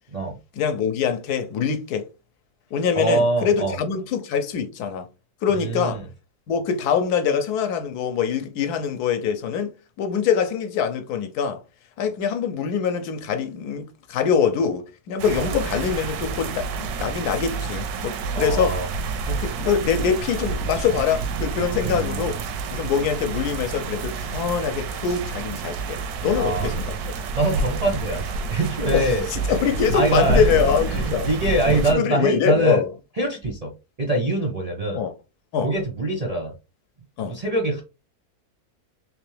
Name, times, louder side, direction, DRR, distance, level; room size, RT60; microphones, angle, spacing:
voice 1, 0.5-2.1 2.7-5.1 5.4-6.0 6.5-9.7 10.0-11.6 12.0-18.8 19.3-22.4 22.7-27.0 28.9-31.3 31.7-32.9 34.9-35.1 35.5-35.7 37.2-37.4, left 7 dB, 85° left, 1.2 m, -24 dB
voice 2, 3.0-3.7 5.5-6.0 15.4-15.5 18.3-18.9 21.8-22.2 26.3-26.7 27.3-29.2 29.9-30.5 30.9-32.8 33.2-33.7 34.0-35.0 35.6-36.5 37.3-37.8, right 1 dB, 45° right, 0.5 m, -24 dB
sound 1, 15.2-31.9, right 4 dB, 80° right, 1.1 m, -28 dB
3.5 x 3.0 x 3.2 m
omnidirectional pair, 1.7 m